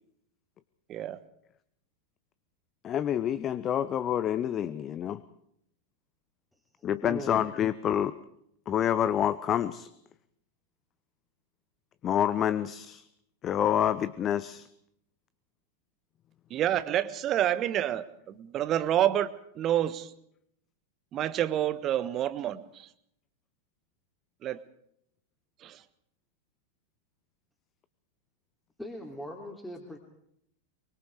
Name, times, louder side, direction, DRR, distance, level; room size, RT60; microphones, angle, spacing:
voice 1, 2.8-5.2 6.8-8.1 8.7-9.9 12.0-13.1 13.4-14.7, left 10 dB, 30° left, 15 dB, 0.9 m, -28 dB
voice 2, 6.8-7.3 28.8-30.0, equal, 5° left, 1 dB, 3.4 m, -40 dB
voice 3, 16.5-20.1 21.1-22.9 24.4-24.6 25.6-25.8, right 11 dB, 30° right, 15 dB, 1.4 m, -28 dB
24.5 x 24.0 x 4.9 m, 0.72 s
figure-of-eight pair, 90°, 0 cm